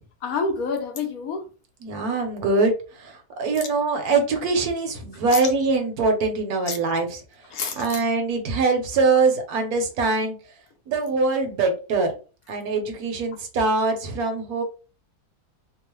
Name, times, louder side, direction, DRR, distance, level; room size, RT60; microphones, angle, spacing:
voice 1, 0.2-1.5 5.3-5.5 6.7-6.8 7.5-8.0 10.0-10.1, left 4 dB, 70° left, 1.0 m, -28 dB
voice 2, 1.8-2.7 3.0-7.2 7.8-10.4 10.9-12.1 12.5-14.6, right 3 dB, 75° right, 1.2 m, -23 dB
3.0 x 2.0 x 3.0 m
omnidirectional pair, 1.7 m